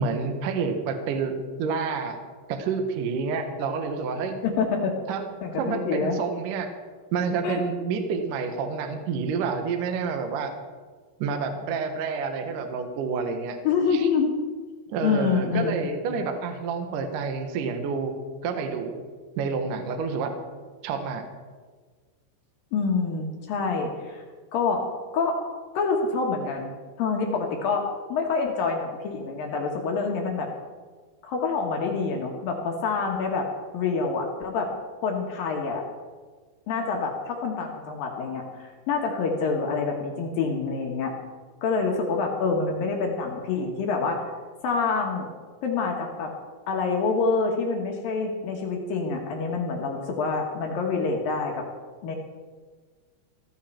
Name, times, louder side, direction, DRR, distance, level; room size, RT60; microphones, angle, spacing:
voice 1, 0.0-1.3 1.6-2.2 2.5-4.4 5.1-5.3 5.6-6.7 7.1-10.5 11.2-13.6 13.9-14.1 14.9-18.1 18.4-19.0 19.4-20.3 20.8-21.3, right 5 dB, 70° right, 6 dB, 2.0 m, -28 dB
voice 2, 4.4-4.9 5.4-6.2 7.4-7.6 13.6-14.3 15.0-15.7 22.7-24.2 24.5-24.8 25.1-25.3 25.7-26.7 27.0-27.8 28.1-30.5 31.2-33.5 33.7-34.7 35.0-35.8 36.7-41.1 41.6-44.3 44.6-45.3 45.6-46.3 46.7-51.6 52.0-52.2, left 4 dB, 70° left, 1 dB, 2.3 m, -26 dB
16.0 x 14.0 x 4.5 m, 1.5 s
omnidirectional pair, 5.8 m